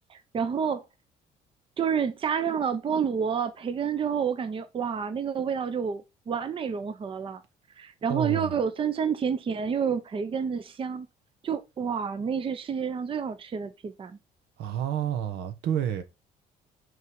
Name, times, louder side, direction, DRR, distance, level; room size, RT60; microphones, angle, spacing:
voice 1, 0.1-0.8 1.8-7.4 7.8-11.1 11.4-14.1, right 7 dB, 30° right, 0.7 m, -29 dB
voice 2, 8.1-8.5 14.6-16.0, right 10 dB, 80° right, 1.0 m, -29 dB
5.4 x 3.9 x 4.7 m
cardioid pair, 110°, 17 cm